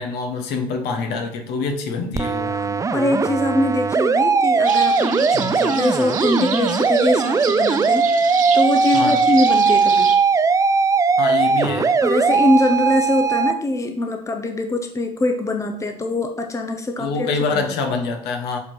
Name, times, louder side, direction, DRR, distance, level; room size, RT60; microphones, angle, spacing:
voice 1, 0.0-2.5 5.3-5.5 8.9-9.2 11.2-11.9 17.0-18.6, left 4 dB, 55° left, 4 dB, 1.3 m, -25 dB
sound 1, 2.1-13.5, right 5 dB, 15° right, 0.4 m, -19 dB
voice 2, 2.4-10.1 10.4-10.5 12.0-17.3 17.5-17.6, left 1 dB, 15° left, 4 dB, 0.9 m, -22 dB
sound 2, 4.6-10.2, right 7 dB, 40° right, 0.9 m, -31 dB
7.4 x 4.6 x 4.5 m, 0.66 s
figure-of-eight pair, 65°, 21 cm